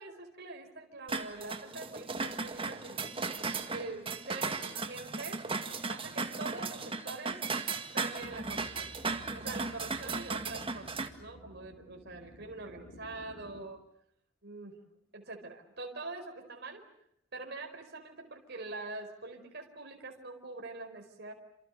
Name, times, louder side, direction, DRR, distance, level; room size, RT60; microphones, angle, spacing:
voice 1, 0.0-3.0 3.5-5.4 5.9-7.4 7.9-8.9 9.3-10.9 11.2-13.8 14.4-14.8 15.1-16.8 17.3-21.3, right 3 dB, 55° right, 3 dB, 4.9 m, -44 dB
sound 1, 1.1-11.1, right 4 dB, 25° right, 1.9 m, -36 dB
sound 2, 8.2-13.6, equal, 65° left, 4.4 m, -53 dB
29.5 x 28.0 x 6.7 m, 0.75 s
head